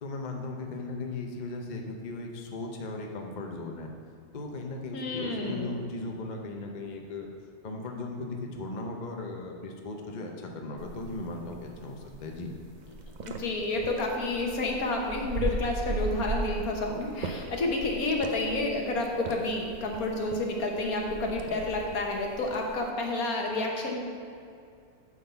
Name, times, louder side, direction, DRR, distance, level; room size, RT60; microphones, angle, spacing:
voice 1, 0.0-3.9 4.3-7.3 7.6-12.5, left 2 dB, 40° left, 2 dB, 0.7 m, -37 dB
voice 2, 4.9-5.7 13.2-24.0, left 2 dB, 70° left, 1 dB, 1.6 m, -30 dB
sound 1, 10.8-22.9, right 2 dB, 80° right, 0.4 m, -38 dB
9.3 x 4.0 x 6.8 m, 2.4 s
omnidirectional pair, 1.6 m